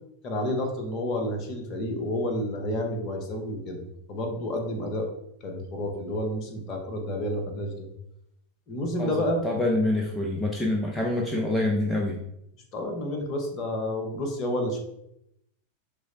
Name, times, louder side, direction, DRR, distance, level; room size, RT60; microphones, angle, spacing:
voice 1, 0.2-5.1 5.4-7.9 8.7-9.4 12.7-14.8, left 1 dB, 35° left, 4 dB, 0.9 m, -30 dB
voice 2, 9.4-12.2, left 1 dB, 10° left, -1 dB, 0.5 m, -26 dB
6.1 x 2.0 x 2.5 m, 0.78 s
figure-of-eight pair, 90°, 0 cm